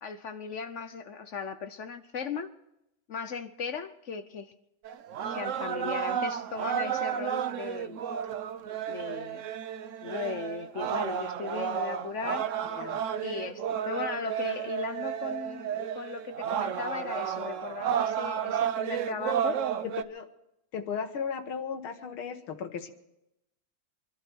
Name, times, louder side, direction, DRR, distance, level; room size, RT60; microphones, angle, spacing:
voice 1, 0.0-2.5 3.1-4.5 5.3-8.0 8.9-9.5 10.0-12.5 13.2-19.6, left 5 dB, 55° left, 0.9 m, -37 dB
sound 1, 4.8-20.0, right 9 dB, 90° right, 0.6 m, -32 dB
voice 2, 12.7-13.0 19.8-20.3 20.7-22.9, left 6 dB, 80° left, 2.1 m, -36 dB
25.0 x 12.0 x 4.5 m
omnidirectional pair, 2.3 m